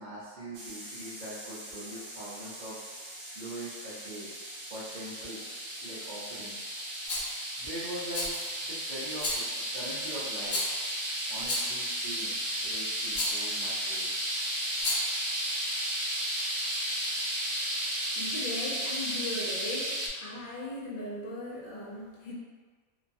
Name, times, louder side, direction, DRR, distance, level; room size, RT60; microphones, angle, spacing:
voice 1, 0.0-2.8 3.3-4.3 4.7-5.4 5.8-6.7 7.6-10.6 11.3-14.1, right 1 dB, 45° right, -10 dB, 0.7 m, -42 dB
sound 1, 0.5-20.1, right 1 dB, 75° right, 0.4 m, -34 dB
Rattle, 7.1-7.4 8.1-8.6 9.2-9.6 10.5-10.9 11.4-11.9 13.1-13.5 14.7-15.2, left 1 dB, 75° left, 1.1 m, -33 dB
voice 2, 18.2-22.3, left 1 dB, 50° left, -6 dB, 0.7 m, -38 dB
3.0 x 2.2 x 2.6 m, 1.5 s
omnidirectional pair, 1.5 m